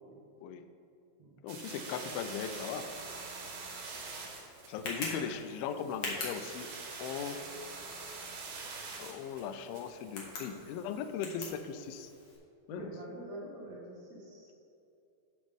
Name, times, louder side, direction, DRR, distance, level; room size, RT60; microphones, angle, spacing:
voice 1, 1.4-2.9 3.6-3.8 4.7-6.7 7.0-7.4 9.0-12.1 12.7-12.9, left 7 dB, 85° left, 9 dB, 2.1 m, -38 dB
sound 1, 1.5-10.9, right 4 dB, 70° right, 2.9 m, -45 dB
Tick, 3.2-12.4, left 2 dB, 60° left, 1.9 m, -45 dB
voice 2, 12.7-14.5, right 1 dB, 85° right, -6 dB, 1.5 m, -46 dB
14.0 x 5.2 x 3.5 m, 2.6 s
omnidirectional pair, 4.8 m